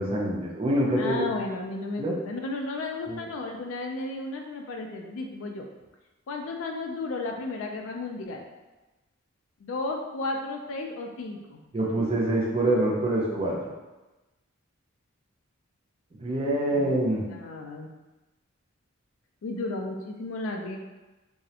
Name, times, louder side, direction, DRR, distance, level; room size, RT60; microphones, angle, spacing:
voice 1, 0.0-1.3 2.0-2.1 3.1-3.2 11.7-13.5 16.2-17.2, right 1 dB, 25° right, -4 dB, 0.4 m, -25 dB
voice 2, 1.0-5.7 6.3-8.4 9.6-11.6 16.7-17.0 17.3-17.9 19.4-20.8, left 2 dB, 65° left, 2 dB, 0.3 m, -33 dB
2.4 x 2.0 x 2.7 m, 1.1 s
head